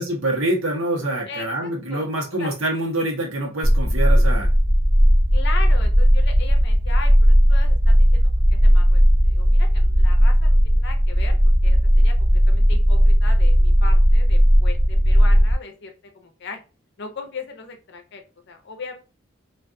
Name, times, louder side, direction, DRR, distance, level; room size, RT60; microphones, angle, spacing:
voice 1, 0.0-4.5, right 1 dB, 90° right, 0 dB, 1.0 m, -25 dB
voice 2, 1.3-2.5 5.3-11.4 11.6-16.6 17.0-18.2 18.5-19.0, left 4 dB, 60° left, 5 dB, 0.6 m, -38 dB
sound 1, 3.6-15.5, equal, 25° left, 1.0 m, -16 dB
2.5 x 2.3 x 2.5 m, 0.31 s
head